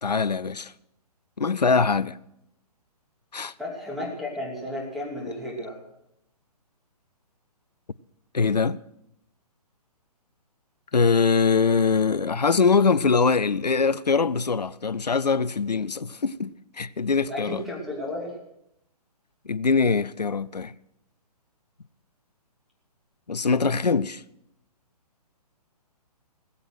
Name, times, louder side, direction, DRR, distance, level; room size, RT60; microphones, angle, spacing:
voice 1, 0.0-0.7 1.4-2.2 3.3-3.5 8.3-8.8 10.9-17.6 19.5-20.7 23.3-24.2, left 5 dB, 90° left, 0.5 m, -23 dB
voice 2, 3.6-5.8 17.3-18.4, left 1 dB, ahead, 2.9 m, -33 dB
19.5 x 7.8 x 6.2 m
figure-of-eight pair, 130°, 20 cm